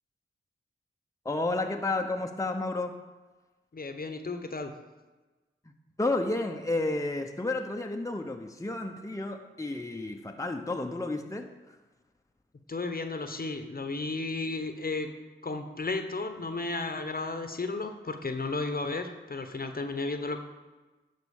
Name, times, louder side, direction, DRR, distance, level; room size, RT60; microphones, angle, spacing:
voice 1, 1.2-3.0 6.0-11.5, left 2 dB, 15° left, 4 dB, 0.9 m, -31 dB
voice 2, 3.7-4.7 12.7-15.1 15.4-20.4, left 3 dB, 45° left, 7 dB, 1.1 m, -33 dB
11.0 x 4.2 x 7.1 m, 1.2 s
cardioid pair, 45°, 21 cm